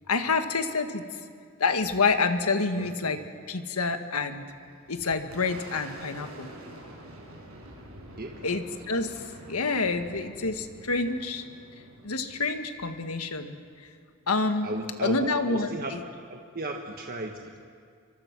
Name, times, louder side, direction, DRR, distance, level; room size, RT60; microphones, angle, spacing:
voice 1, 0.1-1.2 1.6-3.2 3.5-4.5 4.9-6.5 8.4-9.2 9.5-11.4 12.0-13.6 14.3-14.7 15.0-16.0, left 4 dB, 90° left, 7 dB, 1.7 m, -28 dB
Boom, 4.4-13.8, right 1 dB, 75° right, 6.0 m, -47 dB
voice 2, 14.6-15.9 16.3-17.6, right 2 dB, 45° right, 2 dB, 1.5 m, -35 dB
28.0 x 24.5 x 6.1 m, 2.2 s
head